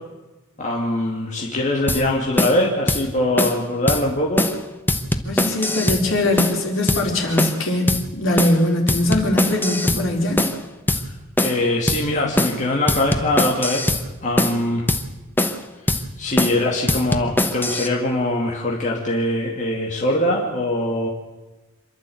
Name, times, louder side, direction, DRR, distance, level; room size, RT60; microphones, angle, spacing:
voice 1, 0.6-4.5 11.4-14.9 15.9-21.1, left 1 dB, 35° left, -2 dB, 2.6 m, -22 dB
sound 1, 1.9-2.0 2.4-2.6 2.9-3.0 3.4-3.6 3.9-4.0 4.4-4.6 4.9-6.0 6.4-6.6 6.9-7.0 7.4-7.6 7.9-8.0 8.4-8.6 8.9-10.0 10.4-10.6 10.9-11.0 11.4-11.6 11.9-12.0 12.4-12.6 12.9-14.0 14.4-14.6 14.9-15.0 15.4-15.6 15.9-16.0 16.4-16.6 16.9-17.9, left 1 dB, 10° left, 1.1 m, -21 dB
voice 2, 5.2-10.4, left 1 dB, 65° left, 0 dB, 4.5 m, -21 dB
27.0 x 12.0 x 7.9 m, 1.1 s
head